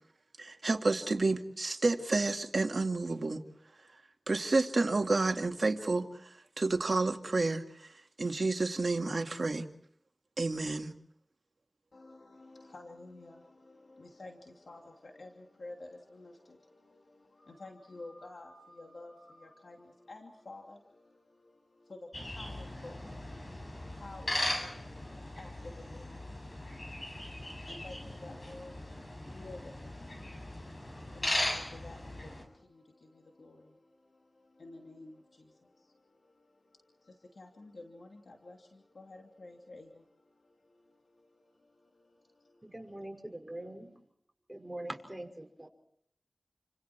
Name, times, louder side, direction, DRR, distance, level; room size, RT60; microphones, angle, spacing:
voice 1, 0.4-3.4 4.3-6.1 6.6-7.9 8.2-9.6 10.4-10.9, right 3 dB, 70° right, 4 dB, 2.1 m, -30 dB
voice 2, 11.9-42.8, left 2 dB, 85° left, 1 dB, 2.8 m, -52 dB
sound 1, 22.1-32.4, left 1 dB, 50° left, 6.9 m, -38 dB
voice 3, 42.6-44.0 44.5-45.7, right 1 dB, 15° right, 3 dB, 5.6 m, -43 dB
30.0 x 26.0 x 4.6 m, 0.66 s
wide cardioid pair, 55°, 0 cm